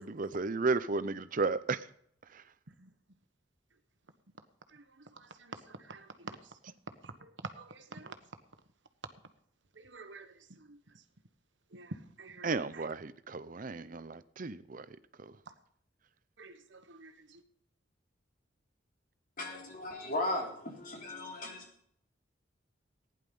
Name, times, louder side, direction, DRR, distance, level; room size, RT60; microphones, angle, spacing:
voice 1, 0.0-1.9 2.3-2.4 12.4-15.3, right 3 dB, 45° right, 0.7 m, -34 dB
voice 2, 5.2-6.4 7.0-8.1 9.8-10.8 11.7-12.5 12.7-12.9 16.4-17.4, right 3 dB, 70° right, 1.3 m, -47 dB
voice 3, 19.4-21.6, left 1 dB, 45° left, 3.4 m, -36 dB
15.0 x 10.5 x 5.4 m
head